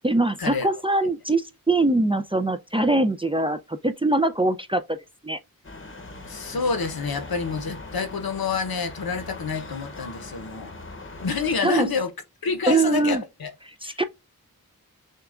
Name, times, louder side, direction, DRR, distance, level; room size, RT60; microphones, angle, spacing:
voice 1, 0.0-5.0 5.2-5.4 11.6-11.9 12.7-13.2 13.8-14.0, right 2 dB, 15° right, 0.4 m, -22 dB
sound 1, 5.6-11.6, left 2 dB, 35° left, 0.8 m, -40 dB
voice 2, 6.3-10.7 11.2-12.1 12.4-13.5 13.8-14.0, left 5 dB, 80° left, 0.8 m, -28 dB
6.5 x 2.3 x 2.4 m
wide cardioid pair, 65°, 36 cm